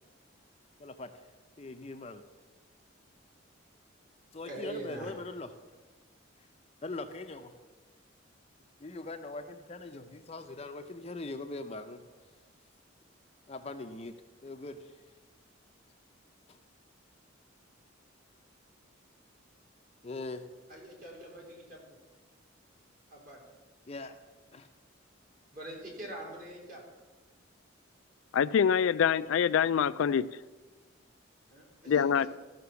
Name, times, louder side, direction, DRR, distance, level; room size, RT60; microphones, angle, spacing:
voice 1, 0.8-1.1 1.6-2.2 4.3-5.5 6.8-7.6 8.8-12.0 13.5-14.2 14.4-15.0 16.5-16.6 20.0-20.5 23.9-24.2 24.5-24.7 32.1-32.2, left 2 dB, 30° left, 7 dB, 0.5 m, -41 dB
voice 2, 4.4-5.1 20.7-21.9 23.1-23.4 25.5-26.8 31.5-32.3, right 1 dB, 40° right, -2 dB, 3.2 m, -43 dB
voice 3, 28.3-30.3 31.9-32.3, left 7 dB, 80° left, 16 dB, 0.3 m, -25 dB
14.5 x 5.8 x 6.9 m, 1.3 s
head